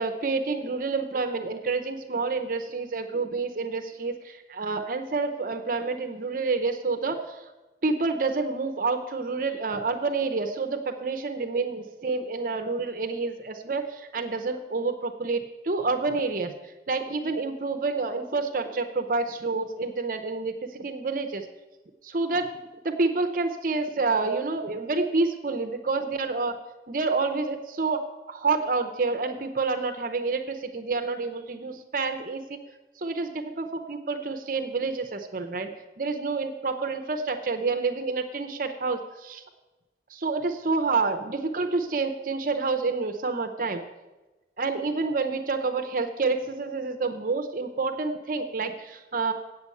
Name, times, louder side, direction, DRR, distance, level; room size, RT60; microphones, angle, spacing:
voice 1, 0.0-7.5 7.8-16.5 16.9-21.5 22.0-22.5 22.8-26.6 26.9-32.6 33.0-35.7 36.0-39.4 40.1-43.8 44.6-49.3, right 3 dB, 45° right, 6 dB, 0.7 m, -28 dB
8.3 x 6.8 x 8.3 m, 1.1 s
head